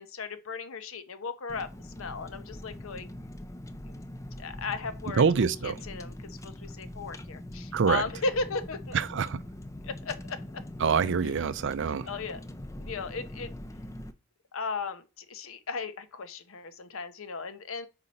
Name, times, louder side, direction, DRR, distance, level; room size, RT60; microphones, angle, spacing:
voice 1, 0.0-1.7 2.0-3.1 4.4-9.0 9.8-10.6 12.1-12.4 12.8-13.5 14.5-17.9, left 4 dB, 65° left, 0.7 m, -36 dB
Car, 1.5-14.1, left 1 dB, 15° left, 0.4 m, -43 dB
voice 2, 5.2-5.8 7.7-8.0 8.9-9.4 10.8-12.1, right 6 dB, 55° right, 0.4 m, -25 dB
5.2 x 4.8 x 4.1 m
head